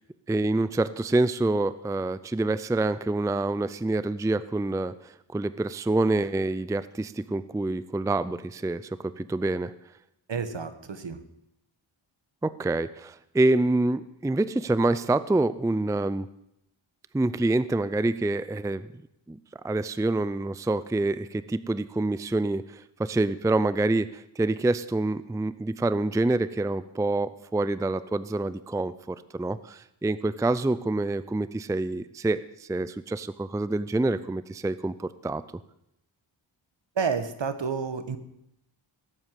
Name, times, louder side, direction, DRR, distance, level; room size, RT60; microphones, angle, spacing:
voice 1, 0.3-9.7 12.4-16.3 17.1-18.9 19.3-35.4, right 2 dB, 5° right, 16 dB, 0.4 m, -27 dB
voice 2, 10.3-11.2 36.9-38.2, right 5 dB, 60° right, 10 dB, 1.4 m, -30 dB
18.0 x 8.0 x 7.5 m, 0.81 s
wide cardioid pair, 65°, 49 cm